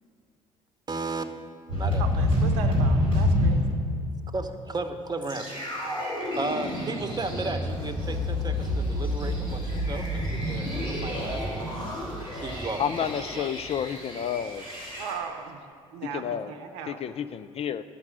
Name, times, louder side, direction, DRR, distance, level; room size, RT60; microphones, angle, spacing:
voice 1, 0.9-1.2 1.7-2.2 4.3-6.0 6.4-11.7 12.3-13.5, right 3 dB, 25° right, 7 dB, 1.0 m, -34 dB
sound 1, 1.7-3.5 5.2-15.1, left 1 dB, 85° left, 3.3 m, -28 dB
voice 2, 2.0-3.6 15.0-15.7 15.9-17.0, right 7 dB, 65° right, 8 dB, 0.7 m, -37 dB
voice 3, 12.8-14.6 16.1-16.5 16.9-17.8, left 8 dB, 35° left, 11 dB, 0.4 m, -30 dB
10.5 x 5.8 x 7.8 m, 2.2 s
figure-of-eight pair, 50°, 18 cm